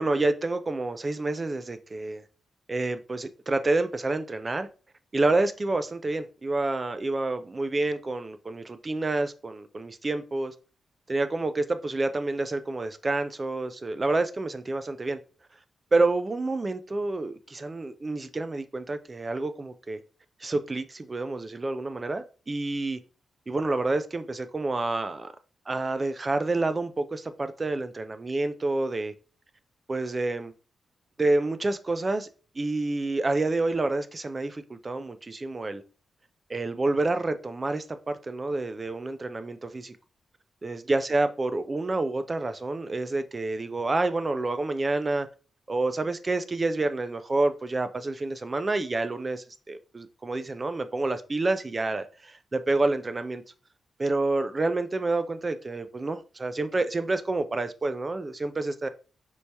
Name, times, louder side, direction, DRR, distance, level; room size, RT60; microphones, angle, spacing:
voice 1, 0.0-2.2 2.7-4.7 5.1-10.5 11.1-15.2 15.9-20.0 20.4-23.0 23.5-25.3 25.7-29.1 29.9-30.5 31.2-32.3 32.6-35.8 36.5-40.0 40.6-45.3 45.7-53.4 54.0-58.9, right 2 dB, 20° right, 0.3 m, -28 dB
4.5 x 3.3 x 2.7 m
wide cardioid pair, 175°, 0 cm